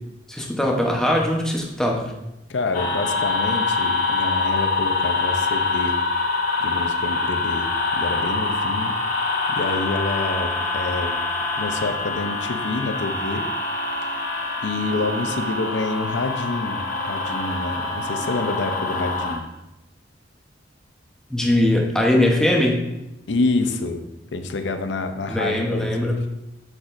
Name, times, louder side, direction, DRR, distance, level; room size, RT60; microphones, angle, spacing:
voice 1, 0.3-2.1 21.3-22.9 25.3-26.2, left 1 dB, 5° left, -1 dB, 0.9 m, -21 dB
voice 2, 2.5-6.0 6.6-7.7 7.9-8.9 9.5-11.2 11.5-13.4 14.6-19.5 23.3-24.0 24.3-26.1, left 3 dB, 85° left, 7 dB, 0.6 m, -27 dB
sound 1, 2.7-19.4, left 3 dB, 50° left, 1.4 m, -25 dB
7.5 x 6.3 x 2.6 m, 0.92 s
head